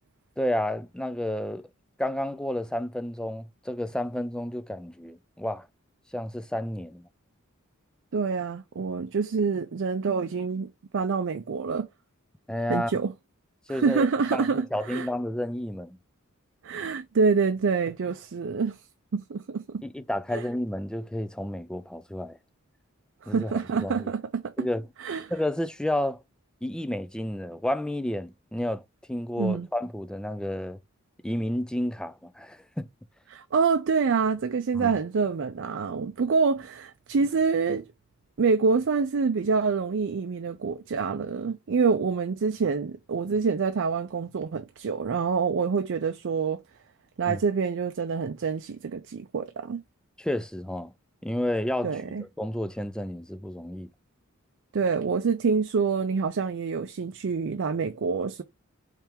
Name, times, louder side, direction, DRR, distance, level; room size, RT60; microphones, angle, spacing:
voice 1, 0.4-1.7 2.0-5.7 6.1-7.1 12.5-12.9 13.7-14.1 14.3-14.4 14.7-16.0 19.8-22.4 23.3-23.5 23.8-24.1 24.6-24.9 25.3-26.2 26.6-28.8 29.1-30.8 31.2-32.9 34.7-34.9 47.3-47.4 50.2-50.9 51.2-51.9 52.4-53.9, left 1 dB, 5° left, 0.3 m, -31 dB
voice 2, 8.1-11.9 12.7-13.1 13.7-15.1 16.6-18.8 19.1-19.8 20.3-20.5 23.2-24.7 25.0-25.3 29.4-29.7 33.3-37.9 38.4-46.6 47.2-49.8 51.8-52.2 54.7-58.4, right 5 dB, 60° right, 0.5 m, -26 dB
3.5 x 3.3 x 4.4 m
head